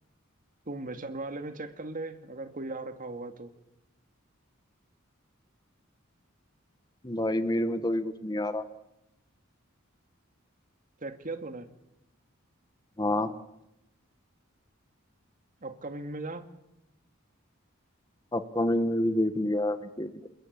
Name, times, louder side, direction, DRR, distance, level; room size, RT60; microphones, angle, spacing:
voice 1, 0.7-3.5 11.0-11.7 15.6-16.5, right 2 dB, 40° right, 8 dB, 2.1 m, -38 dB
voice 2, 7.0-8.6 13.0-13.3 18.3-20.3, left 1 dB, 20° left, 11 dB, 1.3 m, -28 dB
28.5 x 22.0 x 8.7 m, 0.88 s
head